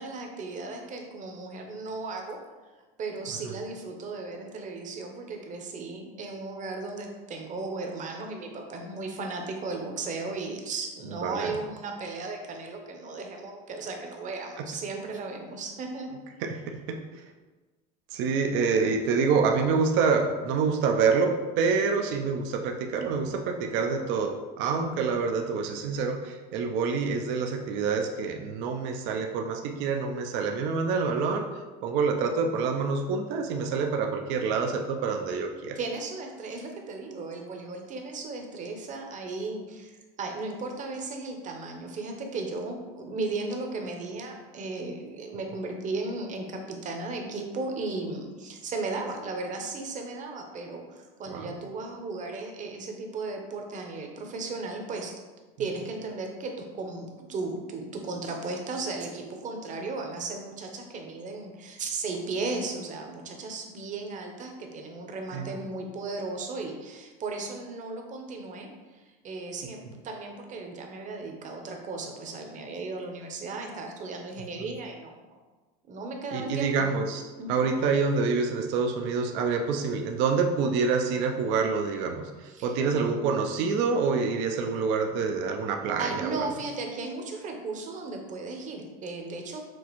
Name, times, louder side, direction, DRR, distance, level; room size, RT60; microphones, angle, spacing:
voice 1, 0.0-2.4 3.0-16.1 35.8-55.1 55.6-68.7 69.2-75.2 75.8-76.9 77.4-77.6 82.5-82.7 86.0-89.6, right 3 dB, 35° right, 3 dB, 0.8 m, -35 dB
voice 2, 11.2-11.6 14.6-14.7 16.4-17.2 18.1-31.5 31.8-35.8 51.3-51.5 65.3-65.5 76.3-77.2 77.5-86.5, right 5 dB, 60° right, 3 dB, 0.5 m, -27 dB
6.0 x 2.4 x 3.0 m, 1.3 s
supercardioid pair, 95°, 21 cm